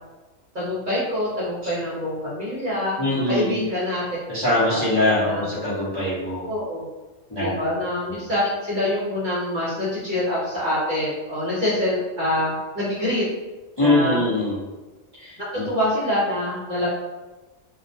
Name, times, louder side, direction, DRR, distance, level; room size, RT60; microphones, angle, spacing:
voice 1, 0.5-4.0 4.7-4.8 5.2-5.5 6.4-6.9 7.4-13.2 13.8-14.2 15.4-16.9, left 1 dB, 50° right, -8 dB, 0.7 m, -25 dB
voice 2, 3.0-3.6 4.3-6.5 7.3-7.5 8.1-8.2 13.8-14.6 15.2-15.7, left 1 dB, 25° left, -10 dB, 0.6 m, -22 dB
2.3 x 2.1 x 2.6 m, 1.1 s
omnidirectional pair, 1.4 m